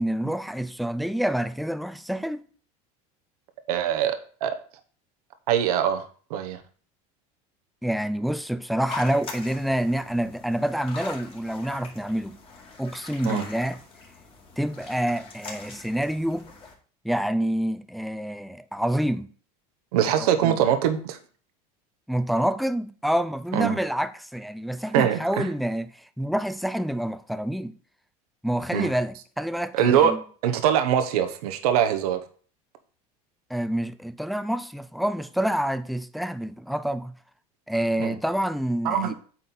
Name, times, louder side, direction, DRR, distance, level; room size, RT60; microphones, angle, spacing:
voice 1, 0.0-2.4 7.8-12.4 12.8-13.8 14.6-16.5 17.0-19.3 20.2-20.6 22.1-27.7 28.4-30.2 33.5-37.1 37.7-39.1, right 1 dB, ahead, 0.3 m, -27 dB
voice 2, 3.7-4.2 4.4-4.5 5.5-6.6 13.2-13.4 19.9-21.2 23.5-23.8 24.9-25.5 28.7-28.9 29.7-30.1 30.4-32.2 38.0-38.2 38.8-39.1, right 9 dB, 90° right, 0.9 m, -23 dB
sound 1, 8.9-16.7, left 3 dB, 30° left, 2.1 m, -42 dB
8.4 x 4.0 x 4.2 m
supercardioid pair, 120°, 19 cm